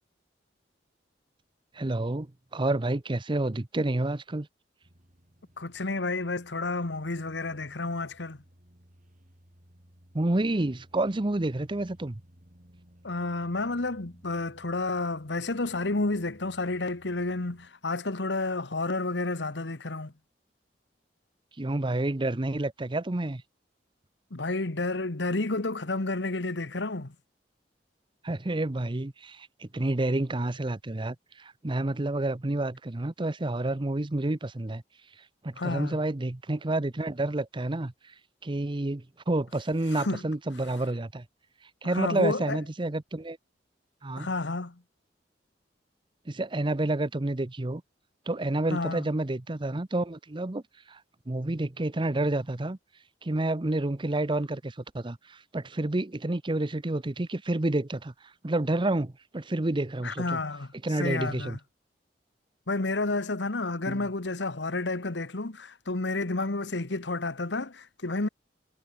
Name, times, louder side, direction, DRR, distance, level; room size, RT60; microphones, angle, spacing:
voice 1, 1.7-4.5 10.1-12.2 21.6-23.4 28.2-34.8 35.4-38.1 38.4-41.2 41.8-43.4 44.0-44.3 46.3-47.8 48.3-50.6 50.9-51.0 51.3-52.8 53.2-58.1 58.4-60.4 60.8-61.6 63.9-64.1, right 2 dB, 30° right, 0.8 m, -29 dB
sound 1, 4.8-17.7, equal, 50° right, 6.3 m, -58 dB
voice 2, 5.6-8.4 13.0-20.1 24.3-27.1 35.6-36.0 39.9-40.2 41.8-42.6 44.2-44.7 48.7-49.0 60.0-60.7 61.0-61.6 62.7-68.3, left 2 dB, 80° left, 1.5 m, -30 dB
head